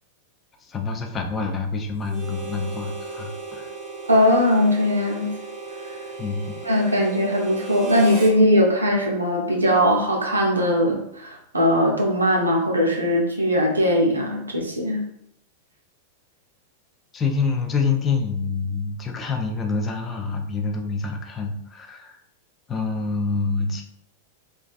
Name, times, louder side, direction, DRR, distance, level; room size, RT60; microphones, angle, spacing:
voice 1, 0.6-3.7 6.2-6.6 17.1-22.2 22.7-23.8, left 4 dB, 20° left, 2 dB, 0.4 m, -26 dB
Harmonica, 2.0-8.4, right 2 dB, 25° right, 0.6 m, -35 dB
voice 2, 4.1-5.3 6.6-15.0, equal, 80° right, 0 dB, 0.5 m, -20 dB
2.3 x 2.2 x 2.4 m, 0.71 s
figure-of-eight pair, 90°, 0 cm